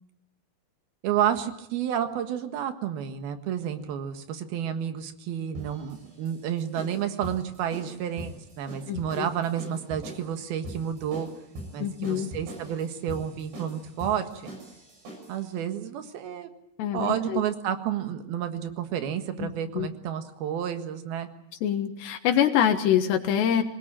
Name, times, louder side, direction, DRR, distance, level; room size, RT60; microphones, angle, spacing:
voice 1, 1.0-11.3 11.7-14.5 15.3-16.5 16.9-21.3, right 9 dB, 70° right, 8 dB, 3.4 m, -30 dB
sound 1, 5.5-15.4, right 1 dB, 85° right, 8.5 m, -42 dB
voice 2, 8.9-9.3 11.8-12.3 16.8-17.4 19.4-19.9 21.6-23.6, left 9 dB, 85° left, 5 dB, 3.6 m, -25 dB
25.0 x 20.0 x 9.0 m, 0.80 s
omnidirectional pair, 4.8 m